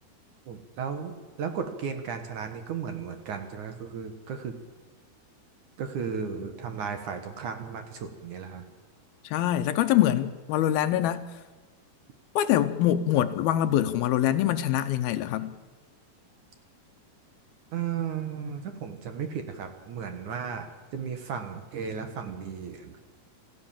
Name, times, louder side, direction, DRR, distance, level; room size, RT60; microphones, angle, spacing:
voice 1, 0.5-4.6 5.8-8.6 17.7-20.7 20.9-23.0, right 6 dB, 60° right, 7 dB, 2.5 m, -35 dB
voice 2, 9.2-11.3 12.4-15.5, left 12 dB, 75° left, 10 dB, 2.5 m, -24 dB
27.0 x 15.0 x 7.4 m, 1.4 s
omnidirectional pair, 4.7 m